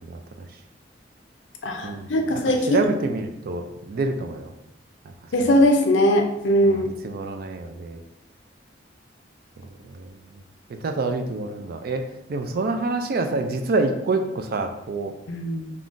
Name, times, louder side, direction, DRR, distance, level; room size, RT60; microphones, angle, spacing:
voice 1, 0.1-0.5 1.8-2.1 2.5-4.5 6.6-8.0 9.9-10.1 10.8-12.0 12.3-15.1, right 3 dB, 55° right, 6 dB, 0.3 m, -27 dB
voice 2, 1.6-2.8 5.3-6.9 15.3-15.7, equal, 90° left, 3 dB, 0.5 m, -20 dB
3.5 x 2.3 x 2.5 m, 0.82 s
head